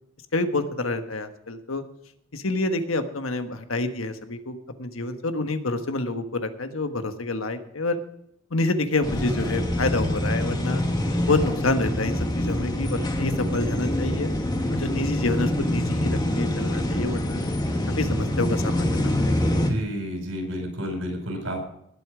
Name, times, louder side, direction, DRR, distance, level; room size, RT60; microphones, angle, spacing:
voice 1, 0.3-1.8 2.3-8.0 8.5-10.8 11.3-14.3 14.7-17.4 18.0-19.5, left 2 dB, 90° left, 8 dB, 1.4 m, -28 dB
sound 1, 9.0-19.7, left 1 dB, 20° left, 1.5 m, -25 dB
voice 2, 19.7-21.6, equal, 80° right, 3 dB, 5.0 m, -30 dB
19.0 x 8.2 x 5.0 m, 0.74 s
head